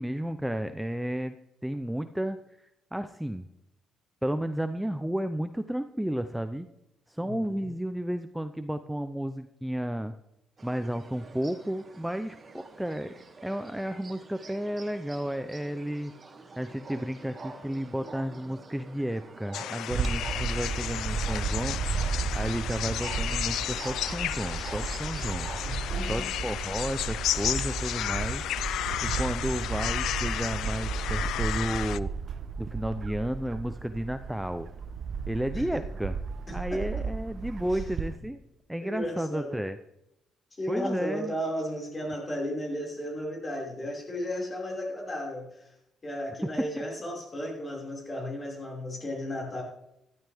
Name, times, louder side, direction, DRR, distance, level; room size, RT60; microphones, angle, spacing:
voice 1, 0.0-1.3 1.6-3.4 4.2-6.7 7.1-10.1 10.6-13.1 13.4-16.1 16.6-21.8 22.3-25.5 26.1-28.5 29.0-32.1 32.6-34.7 35.3-36.2 36.5-38.4 38.7-39.8 40.7-41.3, right 1 dB, 5° right, 10 dB, 0.6 m, -32 dB
sound 1, 10.6-25.8, right 3 dB, 35° right, 2.2 m, -46 dB
sound 2, 19.5-32.0, left 12 dB, 80° left, 0.3 m, -33 dB
Bird / Wind, 19.9-38.2, right 5 dB, 55° right, 0.9 m, -34 dB
voice 2, 25.6-26.3 35.5-35.7 36.5-36.8 37.7-37.8 38.8-39.5 40.5-45.7 46.0-49.6, equal, 30° left, -2 dB, 5.5 m, -34 dB
13.5 x 13.0 x 3.6 m, 0.85 s
cardioid pair, 90°, 0 cm